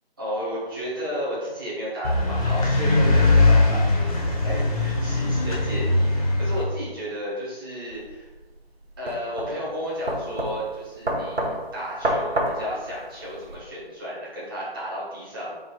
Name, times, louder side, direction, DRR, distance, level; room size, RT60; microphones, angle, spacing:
voice 1, 0.2-8.3 9.0-15.6, equal, 20° right, -8 dB, 1.1 m, -33 dB
sound 1, 2.0-6.6, left 2 dB, 35° left, 0.7 m, -20 dB
sound 2, 7.9-13.6, right 1 dB, 85° right, 1.0 m, -29 dB
3.9 x 2.6 x 4.7 m, 1.2 s
figure-of-eight pair, 160°, 31 cm